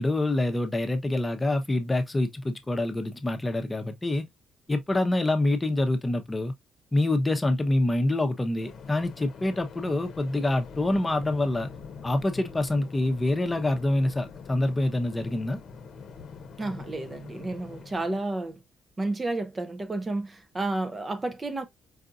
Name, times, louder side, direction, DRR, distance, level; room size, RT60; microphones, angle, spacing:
voice 1, 0.0-4.3 4.7-6.5 6.9-11.7 12.0-15.6, left 2 dB, 20° left, 0.8 m, -26 dB
Waves surf, 8.6-18.3, left 5 dB, 60° left, 0.8 m, -44 dB
voice 2, 16.6-18.6 19.0-21.7, right 2 dB, 25° right, 0.6 m, -31 dB
4.8 x 2.5 x 2.5 m
cardioid pair, 90°, 0 cm